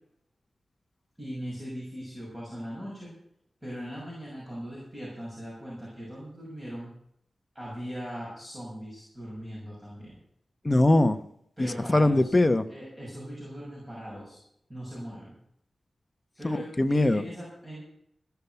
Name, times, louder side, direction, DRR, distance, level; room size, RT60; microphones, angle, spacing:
voice 1, 1.2-3.1 3.6-6.9 7.5-10.2 11.6-12.2 12.7-14.4 14.7-15.3 16.4-17.8, equal, 10° right, -7 dB, 6.5 m, -39 dB
voice 2, 10.6-11.2 11.6-12.6 16.4-17.2, left 1 dB, 25° left, 9 dB, 0.9 m, -22 dB
16.0 x 7.1 x 8.2 m, 0.70 s
wide cardioid pair, 105°, 0 cm